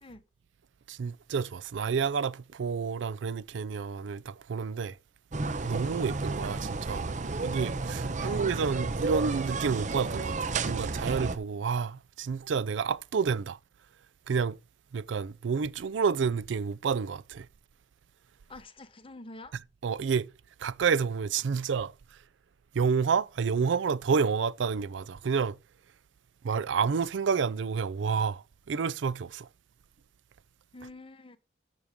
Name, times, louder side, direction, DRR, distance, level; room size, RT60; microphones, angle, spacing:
voice 1, 0.9-5.0 5.6-7.1 7.4-13.6 14.3-14.6 14.9-17.5 19.8-20.3 20.6-21.9 22.7-25.6 26.4-29.5, right 6 dB, 70° right, 0.4 m, -29 dB
sound 1, 5.3-11.4, right 3 dB, 40° right, 0.7 m, -32 dB
voice 2, 8.2-8.6 18.5-19.5 30.7-31.4, left 2 dB, 30° left, 1.0 m, -46 dB
14.0 x 6.3 x 3.6 m
head